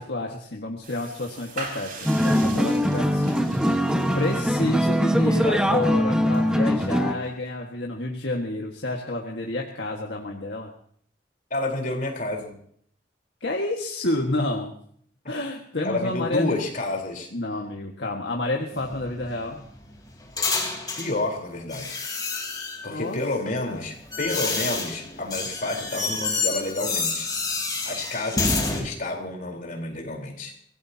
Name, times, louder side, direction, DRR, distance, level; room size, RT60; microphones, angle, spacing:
voice 1, 0.0-3.4 4.2-10.7 13.4-14.7 15.3-16.5 17.3-19.6 22.9-23.2 23.7-23.8, left 2 dB, 75° left, 0 dB, 1.8 m, -29 dB
sound 1, 0.8-7.5, right 3 dB, 50° right, 4.8 m, -42 dB
sound 2, 2.1-7.1, equal, 5° right, 1.4 m, -22 dB
voice 2, 4.0-4.4 9.0-9.1 11.5-12.6 15.8-17.3 21.0-22.0 22.8-27.3 27.8-30.6, left 2 dB, 50° left, 1 dB, 4.2 m, -30 dB
sound 3, 18.7-21.1 21.7-22.9 23.6-28.8, left 4 dB, 25° left, 4.0 m, -28 dB
25.0 x 17.5 x 2.9 m, 0.62 s
head